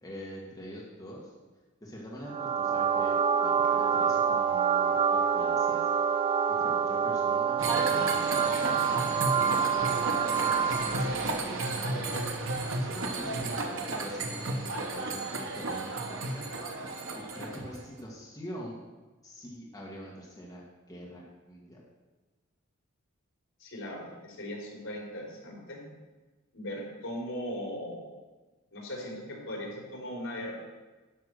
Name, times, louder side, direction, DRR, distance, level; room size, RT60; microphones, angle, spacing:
voice 1, 0.0-1.3 1.8-3.2 3.4-5.9 6.5-7.6 7.9-12.2 12.6-18.8 19.2-20.6 20.9-21.8, equal, 15° left, -5 dB, 1.7 m, -44 dB
sound 1, 2.3-11.1, right 7 dB, 25° right, 0.4 m, -27 dB
sound 2, 7.6-17.8, right 2 dB, 65° right, 1.1 m, -33 dB
voice 2, 23.6-25.8 26.5-28.1 28.7-30.5, equal, 65° left, -2 dB, 3.8 m, -38 dB
11.5 x 6.0 x 6.3 m, 1.2 s
head